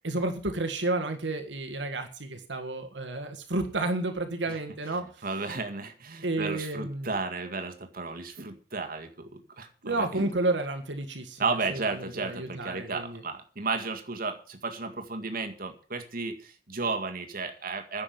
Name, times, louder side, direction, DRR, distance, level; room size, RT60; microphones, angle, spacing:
voice 1, 0.0-5.2 6.2-7.1 9.8-13.2, right 2 dB, 70° right, 5 dB, 1.7 m, -31 dB
voice 2, 5.2-10.3 11.4-18.0, right 4 dB, 50° right, 5 dB, 1.9 m, -33 dB
10.5 x 7.6 x 9.3 m, 0.41 s
head